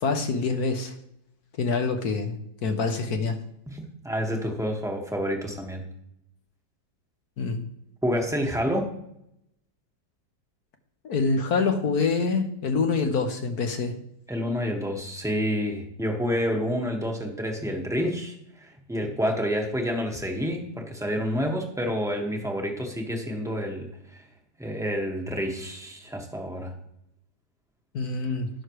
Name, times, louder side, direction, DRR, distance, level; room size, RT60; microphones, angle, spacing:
voice 1, 0.0-1.0 1.6-3.4 7.4-7.6 11.0-13.9 27.9-28.5, left 4 dB, 60° left, 6 dB, 1.6 m, -26 dB
voice 2, 3.7-5.8 8.0-8.9 14.3-24.2 24.6-26.8, equal, ahead, 1 dB, 1.5 m, -29 dB
18.5 x 6.5 x 3.2 m, 0.77 s
omnidirectional pair, 2.0 m